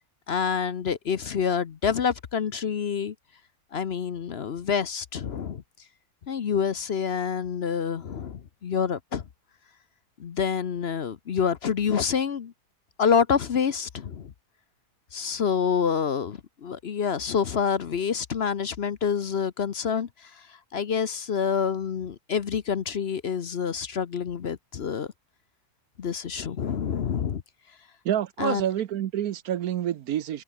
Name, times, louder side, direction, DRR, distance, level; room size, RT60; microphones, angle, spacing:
voice 1, 0.3-3.1 3.7-5.6 6.3-9.2 10.2-12.5 13.0-14.3 15.1-20.3 20.7-25.1 26.0-27.4 28.4-28.6, left 7 dB, 50° left, 0.9 m, -27 dB
voice 2, 28.0-30.4, right 11 dB, 70° right, 1.2 m, -28 dB
omnidirectional pair, 1.7 m